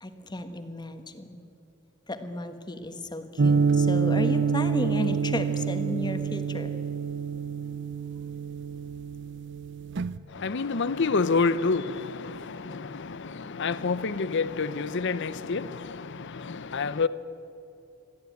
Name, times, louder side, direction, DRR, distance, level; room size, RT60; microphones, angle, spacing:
voice 1, 0.0-1.4 2.1-6.7, left 1 dB, 20° left, 1.3 m, -33 dB
sound 1, 3.4-10.2, right 5 dB, 60° right, 0.6 m, -27 dB
voice 2, 10.3-17.1, left 4 dB, 60° left, 0.7 m, -28 dB
22.0 x 14.0 x 9.3 m
head